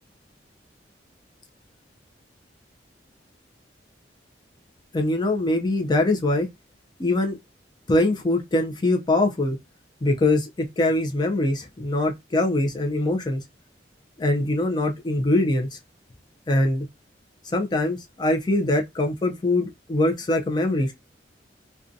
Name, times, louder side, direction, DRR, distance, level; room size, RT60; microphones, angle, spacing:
voice 1, 4.9-6.5 7.0-7.4 7.9-9.6 10.0-13.4 14.2-15.7 16.5-16.9 17.5-20.9, left 2 dB, 25° left, 0.4 m, -23 dB
2.5 x 2.2 x 2.6 m
head